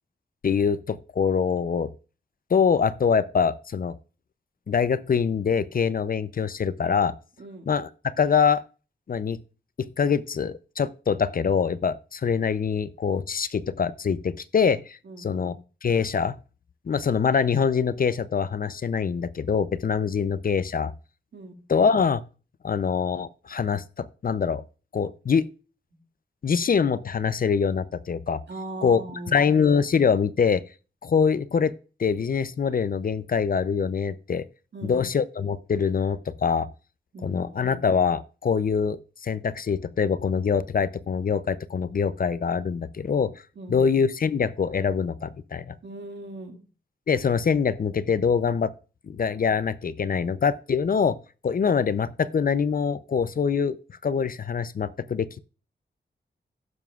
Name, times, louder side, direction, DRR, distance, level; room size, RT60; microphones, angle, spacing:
voice 1, 0.4-1.9 2.5-3.9 4.7-7.1 7.7-8.6 9.1-9.4 10.0-15.6 15.8-16.3 16.9-20.9 21.7-22.2 22.6-24.6 24.9-25.5 26.4-28.4 28.8-29.0 29.3-30.6 31.0-31.7 32.0-34.4 34.8-36.7 37.2-43.4 43.7-45.7 47.1-48.7 49.1-51.2 51.4-53.8 54.0-55.4, left 6 dB, 50° left, 0.5 m, -24 dB
voice 2, 7.4-7.7 15.0-15.6 21.3-21.6 25.9-26.0 28.5-29.4 34.7-35.0 37.1-37.7 43.6-43.8 45.8-46.6, right 2 dB, 65° right, 2.0 m, -39 dB
17.0 x 7.1 x 2.3 m
wide cardioid pair, 110°, 19 cm